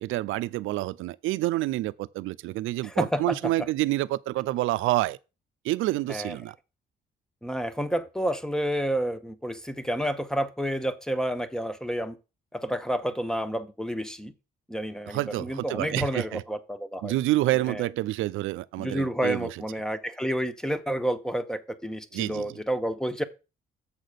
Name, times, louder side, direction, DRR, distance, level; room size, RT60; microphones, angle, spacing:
voice 1, 0.0-5.2 5.6-6.6 15.1-16.4 17.0-19.6 22.1-22.6, right 17 dB, 90° right, 0.5 m, -28 dB
voice 2, 2.8-3.4 6.1-6.4 7.4-12.2 12.5-14.3 14.7-17.1 17.7-17.8 18.8-23.2, equal, 5° left, 0.9 m, -30 dB
7.4 x 4.0 x 6.5 m
cardioid pair, 90°, 20 cm